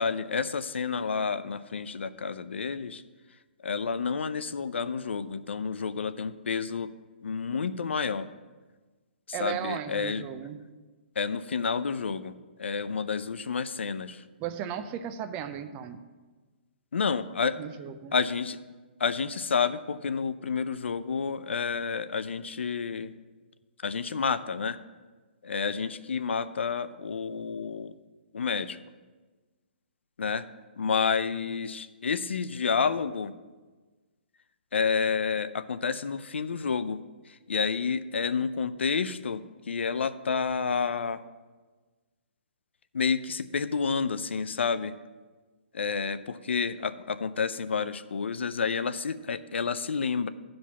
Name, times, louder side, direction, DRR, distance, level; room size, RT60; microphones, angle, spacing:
voice 1, 0.0-3.0 3.6-6.9 7.2-8.3 9.3-10.2 11.2-14.2 16.9-17.6 18.1-18.6 19.0-23.1 23.8-24.8 25.4-27.9 28.3-28.8 30.2-30.5 30.8-33.3 34.7-41.2 42.9-44.9 45.7-50.3, left 5 dB, 90° left, 13 dB, 0.6 m, -30 dB
voice 2, 9.3-10.6 14.4-16.0 17.6-18.1, right 9 dB, 20° right, 9 dB, 0.5 m, -35 dB
11.0 x 5.1 x 7.0 m, 1.3 s
hypercardioid pair, 160°, 6 cm